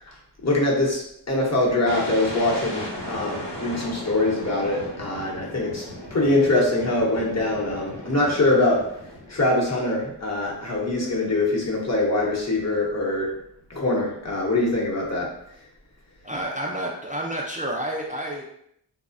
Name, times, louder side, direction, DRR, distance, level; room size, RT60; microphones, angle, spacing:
voice 1, 0.4-5.9 6.1-8.8 9.3-13.3 13.7-15.3, left 2 dB, 40° left, -4 dB, 0.9 m, -23 dB
sound 1, 1.9-9.7, left 1 dB, 85° left, 0.9 m, -36 dB
voice 2, 16.2-18.4, right 1 dB, 20° right, -3 dB, 0.4 m, -29 dB
3.1 x 2.1 x 2.5 m, 0.73 s
wide cardioid pair, 55°, 41 cm